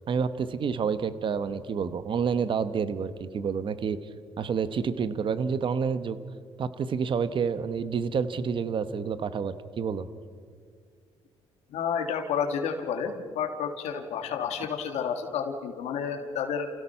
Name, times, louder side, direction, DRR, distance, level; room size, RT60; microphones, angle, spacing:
voice 1, 0.1-4.0 4.4-6.2 6.6-10.1, right 6 dB, 50° right, 13 dB, 1.2 m, -29 dB
voice 2, 11.7-16.7, left 7 dB, 80° left, 5 dB, 2.1 m, -30 dB
29.0 x 16.5 x 5.8 m, 2.1 s
cardioid pair, 95°, 11 cm